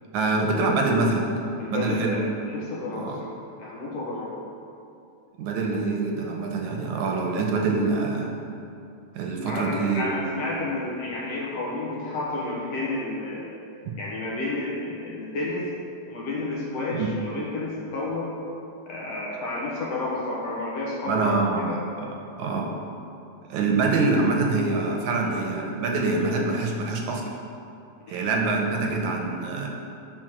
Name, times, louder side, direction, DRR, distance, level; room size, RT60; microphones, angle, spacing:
voice 1, 0.1-1.4 1.7-2.2 2.9-3.2 5.4-8.3 9.1-10.2 16.9-17.1 21.1-22.1 22.4-22.7 23.5-27.2 28.1-29.7, right 3 dB, 75° right, 1 dB, 2.0 m, -25 dB
voice 2, 1.6-2.2 2.5-3.2 3.6-4.4 9.5-13.5 14.0-15.7 16.1-18.3 18.9-21.8 28.1-28.2, left 2 dB, 60° left, -5 dB, 2.0 m, -31 dB
9.0 x 4.1 x 6.2 m, 2.6 s
omnidirectional pair, 3.6 m